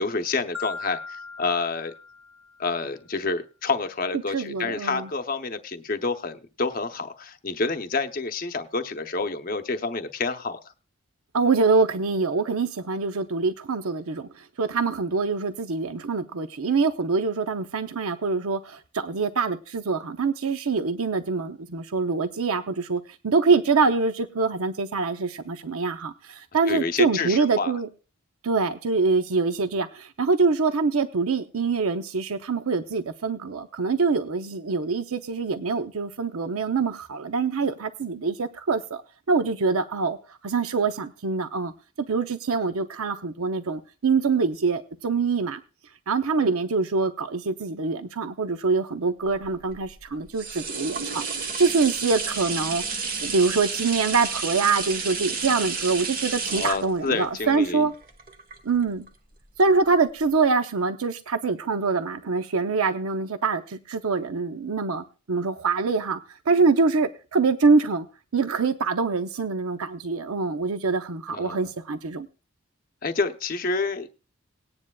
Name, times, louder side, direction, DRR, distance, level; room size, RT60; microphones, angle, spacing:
voice 1, 0.0-1.9 2.6-10.6 26.7-27.7 56.5-57.9 71.3-71.6 73.0-74.1, left 4 dB, 40° left, 8 dB, 0.7 m, -28 dB
Marimba xylophone, 0.5-2.7, left 4 dB, 5° right, 0.8 m, -39 dB
voice 2, 4.3-5.1 11.3-27.9 28.4-39.0 39.3-40.2 40.4-41.7 42.1-45.6 46.1-57.9 58.6-59.1 59.6-66.2 66.5-68.1 68.3-72.3, right 4 dB, 80° right, 9 dB, 0.7 m, -24 dB
sound 1, 49.3-59.1 59.6-59.7, right 5 dB, 40° right, 1.2 m, -31 dB
19.0 x 9.7 x 2.3 m, 0.32 s
head